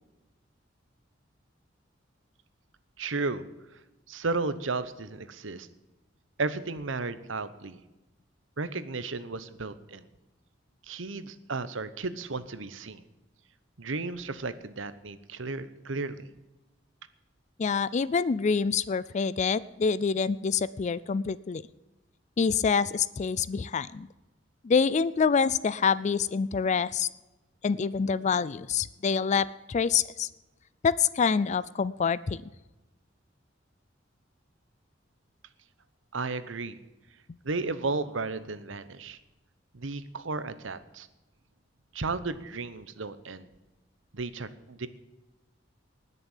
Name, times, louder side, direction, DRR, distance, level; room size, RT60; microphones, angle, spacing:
voice 1, 3.0-3.5 4.1-5.7 6.4-7.8 8.6-10.1 10.9-13.0 13.8-16.3 36.1-36.8 37.4-39.2 39.7-41.1 41.9-43.5 44.1-44.9, right 3 dB, 80° right, 14 dB, 1.0 m, -34 dB
voice 2, 17.6-21.6 22.4-24.1 24.6-27.1 27.6-30.3 30.8-32.4, left 5 dB, 40° left, 19 dB, 0.4 m, -26 dB
19.5 x 6.8 x 7.3 m, 1.0 s
head